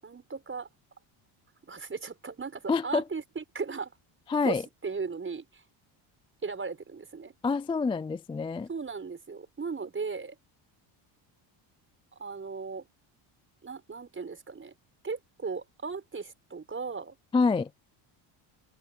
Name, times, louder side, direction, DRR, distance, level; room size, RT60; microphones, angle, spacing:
voice 1, 0.0-0.7 1.6-3.9 4.4-5.6 6.4-7.3 8.7-10.3 12.1-12.8 13.6-14.7 15.0-17.1, right 4 dB, 25° right, 6.8 m, -37 dB
voice 2, 2.7-3.0 4.3-4.6 7.4-8.7 17.3-17.7, left 4 dB, 10° left, 0.3 m, -26 dB
open air
cardioid pair, 120°, 50 cm